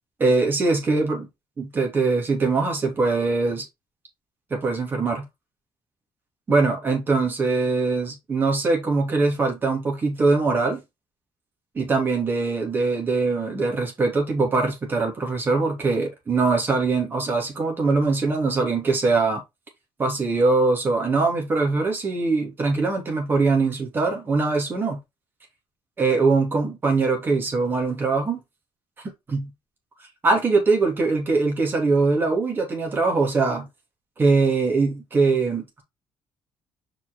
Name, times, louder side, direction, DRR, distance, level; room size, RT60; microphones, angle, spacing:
voice 1, 0.2-1.3 1.6-3.6 4.5-5.2 6.5-10.8 11.7-19.4 20.0-25.0 26.0-28.4 29.3-29.5 30.2-33.7 34.2-35.8, right 3 dB, 25° right, 3.1 m, -22 dB
5.6 x 5.3 x 4.3 m
cardioid pair, 170°, 9 cm